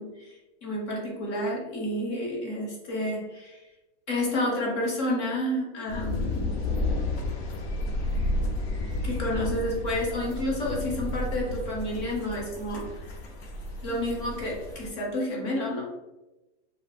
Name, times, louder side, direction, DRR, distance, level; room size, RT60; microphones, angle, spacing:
voice 1, 0.0-3.6 4.1-6.6 9.0-13.1 13.8-15.8, left 1 dB, 25° left, -2 dB, 0.5 m, -30 dB
sound 1, 5.9-14.9, left 2 dB, 65° left, 0.7 m, -31 dB
2.4 x 2.0 x 3.3 m, 1.0 s
supercardioid pair, 170°, 35 cm